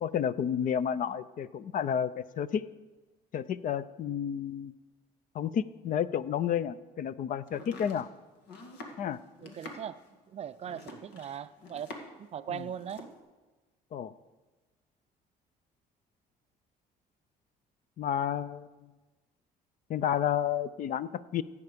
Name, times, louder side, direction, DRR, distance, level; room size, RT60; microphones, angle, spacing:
voice 1, 0.0-2.7 3.3-4.7 5.3-8.1 9.0-9.2 12.5-12.6 13.9-14.1 18.0-18.9 19.9-21.4, left 9 dB, 50° left, 17 dB, 0.5 m, -31 dB
Domestic sounds home sounds, 7.5-12.3 12.5-13.2, left 2 dB, 85° left, 1.9 m, -47 dB
voice 2, 9.4-10.0 10.3-13.1, right 9 dB, 40° right, 14 dB, 0.4 m, -40 dB
15.0 x 8.5 x 5.2 m, 1.2 s
cardioid pair, 110°, 17 cm